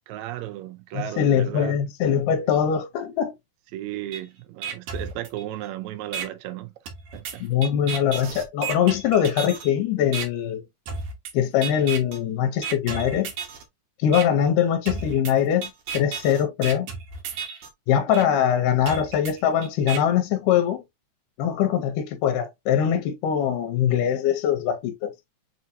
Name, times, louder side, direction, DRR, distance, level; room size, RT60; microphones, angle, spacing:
voice 1, 0.1-1.8 2.5-2.6 3.7-6.7 7.1-7.4, right 14 dB, 85° right, 1.6 m, -35 dB
voice 2, 0.9-3.3 7.4-10.6 11.3-13.3 14.0-16.9 17.9-20.8 21.4-25.1, left 9 dB, 80° left, 2.2 m, -22 dB
sound 1, 4.1-4.2 4.6-5.7 6.1-6.3 6.9-9.7 10.1-10.3 10.9-11.3 11.6-12.2 12.6-13.6 14.1-14.2 14.9-17.7 18.1-18.2 18.9-20.0, right 5 dB, 65° right, 1.9 m, -33 dB
6.3 x 2.9 x 2.6 m
omnidirectional pair, 3.9 m